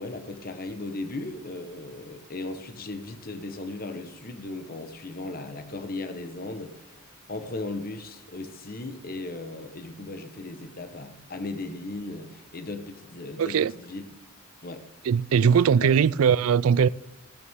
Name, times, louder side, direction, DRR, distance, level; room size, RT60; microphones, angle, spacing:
voice 1, 0.0-7.0 7.3-14.0 14.6-14.8 15.4-15.5 15.8-15.9, left 2 dB, 45° left, 1.1 m, -37 dB
voice 2, 13.4-13.7 15.0-16.9, right 7 dB, 90° right, 0.4 m, -20 dB
15.5 x 12.5 x 3.6 m
head